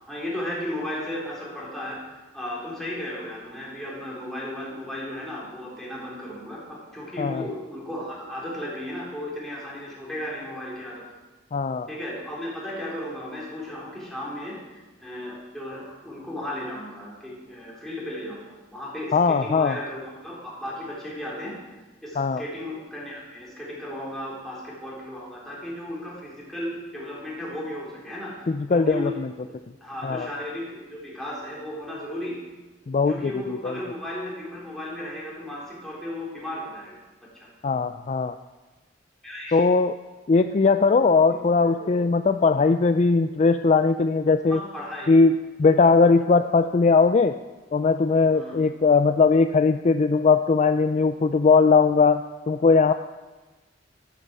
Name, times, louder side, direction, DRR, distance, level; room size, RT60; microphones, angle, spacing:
voice 1, 0.0-2.0 2.3-11.0 11.9-21.6 22.0-29.1 29.8-32.4 33.1-37.0 37.3-37.5 39.2-39.6 41.3-42.0 44.5-45.1 48.3-48.5, left 1 dB, ahead, -6 dB, 4.2 m, -35 dB
voice 2, 11.5-11.9 19.1-19.8 22.2-22.4 28.5-29.3 30.0-30.3 32.9-33.8 37.6-38.4 39.5-39.9 40.3-44.6 45.1-47.4 47.7-52.9, left 4 dB, 40° left, 10 dB, 0.4 m, -20 dB
12.0 x 8.9 x 7.6 m, 1.2 s
head